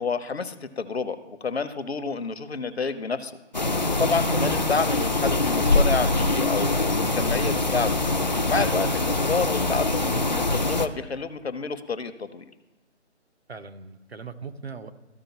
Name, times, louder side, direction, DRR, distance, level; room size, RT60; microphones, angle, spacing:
voice 1, 0.0-3.3 3.9-8.0 8.5-12.4, left 5 dB, 60° left, 11 dB, 0.8 m, -29 dB
sound 1, 3.5-10.9, left 2 dB, 40° left, 0.4 m, -23 dB
voice 2, 4.0-4.3 8.7-9.0 13.5-14.9, right 6 dB, 60° right, 9 dB, 0.8 m, -39 dB
14.0 x 4.9 x 2.9 m, 1.1 s
figure-of-eight pair, 155°, 36 cm